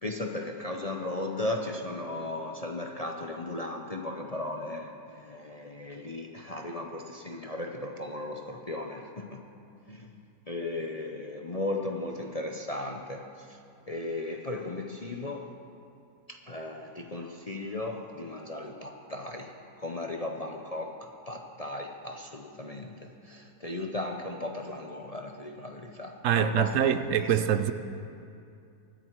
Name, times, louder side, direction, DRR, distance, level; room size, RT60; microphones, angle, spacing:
voice 1, 0.0-9.4 9.9-10.2 10.5-13.6 13.9-15.5 16.3-19.5 19.8-26.8 27.2-27.3, left 2 dB, 35° left, 2 dB, 0.7 m, -36 dB
voice 2, 26.2-27.7, right 9 dB, 60° right, 10 dB, 0.9 m, -24 dB
24.0 x 10.0 x 4.7 m, 2.5 s
omnidirectional pair, 1.8 m